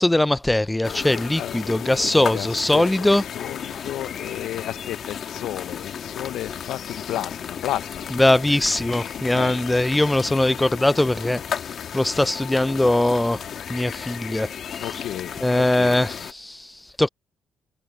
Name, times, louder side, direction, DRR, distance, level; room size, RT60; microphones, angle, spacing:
voice 1, 0.0-3.2 8.1-11.4 11.9-13.4 13.7-14.5 15.4-16.7 17.0-17.1, left 1 dB, 10° left, 0.4 m, -21 dB
sound 1, 0.8-16.3, left 8 dB, 60° left, 1.5 m, -34 dB
voice 2, 1.4-3.1 3.3-8.1 9.3-9.6 14.8-16.0, left 13 dB, 85° left, 0.6 m, -33 dB
cardioid pair, 90°, 0 cm